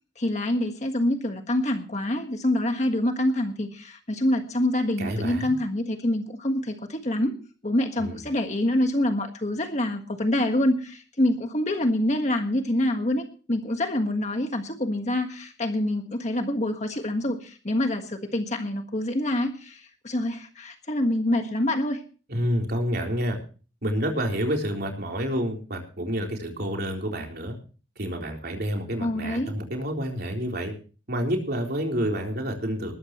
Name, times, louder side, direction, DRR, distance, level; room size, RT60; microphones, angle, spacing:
voice 1, 0.2-7.4 7.6-22.0 29.0-29.5, left 1 dB, 35° left, 5 dB, 1.5 m, -26 dB
voice 2, 5.0-5.5 8.0-8.2 22.3-23.4 23.8-27.6 28.0-30.7 31.1-32.9, equal, 55° right, 1 dB, 3.8 m, -28 dB
20.5 x 13.0 x 3.1 m, 0.37 s
head